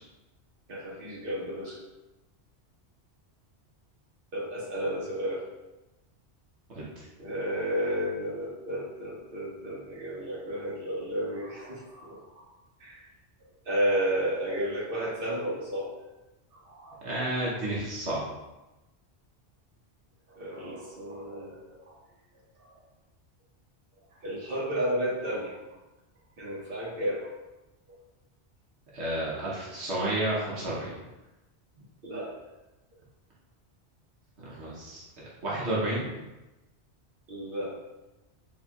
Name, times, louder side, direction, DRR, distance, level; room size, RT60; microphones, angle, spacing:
voice 1, 0.7-1.8 4.3-5.4 7.2-12.4 12.8-13.0 13.6-15.9 16.6-17.0 20.3-21.9 22.6-22.8 24.2-25.6 26.4-27.3 32.0-32.3 37.3-37.7, equal, 55° right, -7 dB, 1.4 m, -32 dB
voice 2, 6.7-7.1 17.0-18.2 28.9-31.0 34.4-35.0 35.4-36.1, right 1 dB, 80° right, -6 dB, 1.3 m, -31 dB
4.2 x 4.1 x 2.3 m, 1.0 s
omnidirectional pair, 1.1 m